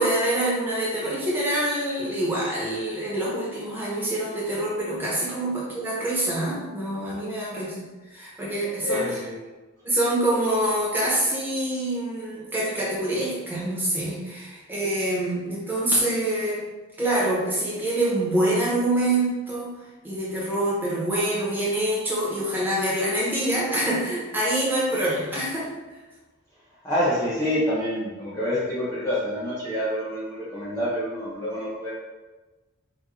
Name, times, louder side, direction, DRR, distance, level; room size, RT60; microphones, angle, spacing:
voice 1, 0.0-9.1 9.8-16.6 17.0-19.7 20.0-25.7, right 1 dB, 10° right, -7 dB, 1.2 m, -25 dB
voice 2, 8.8-9.4 26.8-31.9, equal, 15° left, -9 dB, 0.8 m, -27 dB
4.6 x 2.6 x 3.7 m, 1.2 s
head